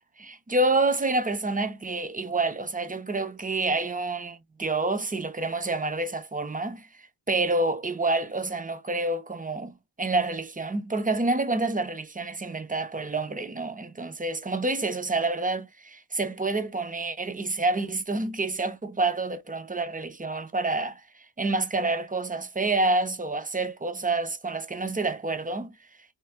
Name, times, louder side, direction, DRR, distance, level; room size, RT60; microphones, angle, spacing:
voice 1, 0.2-6.9 7.3-21.0 21.4-25.8, right 2 dB, 15° right, 0.6 m, -28 dB
4.3 x 3.2 x 3.6 m
wide cardioid pair, 180°, 49 cm